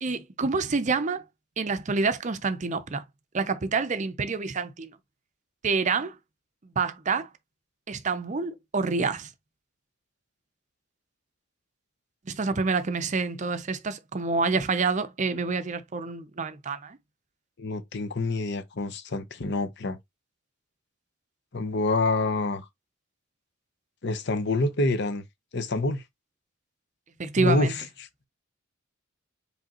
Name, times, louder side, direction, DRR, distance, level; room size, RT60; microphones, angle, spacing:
voice 1, 0.0-1.2 1.6-3.0 3.3-4.9 5.6-6.2 6.6-7.3 7.9-9.3 12.3-17.0 27.2-27.7, right 4 dB, 35° right, 0.5 m, -27 dB
voice 2, 17.6-20.0 21.5-22.7 24.0-25.2 25.5-26.0 27.3-27.8, left 2 dB, 60° left, 0.8 m, -27 dB
5.0 x 3.3 x 2.9 m
head